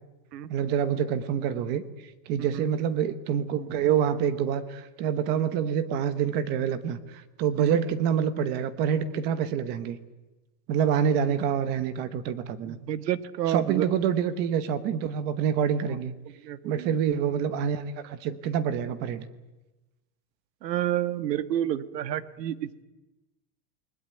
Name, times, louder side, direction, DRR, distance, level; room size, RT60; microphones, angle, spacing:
voice 1, 0.5-1.8 2.3-10.0 10.7-12.8 13.5-16.1 16.6-19.3, right 8 dB, 20° right, 14 dB, 1.0 m, -26 dB
voice 2, 12.7-13.9 16.4-16.9 20.6-22.8, right 11 dB, 80° right, 15 dB, 1.6 m, -29 dB
29.0 x 20.0 x 9.3 m, 1.1 s
supercardioid pair, 180°, 49 cm